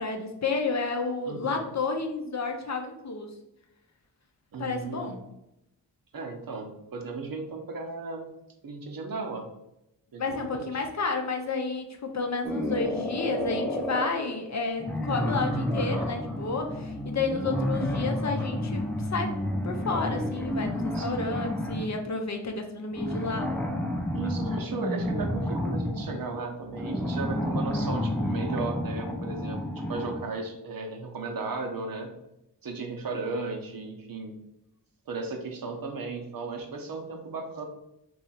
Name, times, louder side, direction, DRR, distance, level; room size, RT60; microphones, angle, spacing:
voice 1, 0.0-3.3 4.6-5.2 10.2-19.4 19.6-23.5, left 4 dB, 45° left, 4 dB, 0.6 m, -31 dB
voice 2, 1.3-1.7 4.5-5.2 6.1-8.3 8.6-9.5 10.1-10.8 17.3-17.6 20.9-21.3 24.1-32.1 32.6-34.3 35.1-37.7, right 4 dB, 55° right, 3 dB, 0.7 m, -35 dB
sound 1, 12.4-14.2 14.8-21.9 22.9-30.3, left 1 dB, 5° left, 0.6 m, -30 dB
2.8 x 2.3 x 4.1 m, 0.85 s
cardioid pair, 40°, 41 cm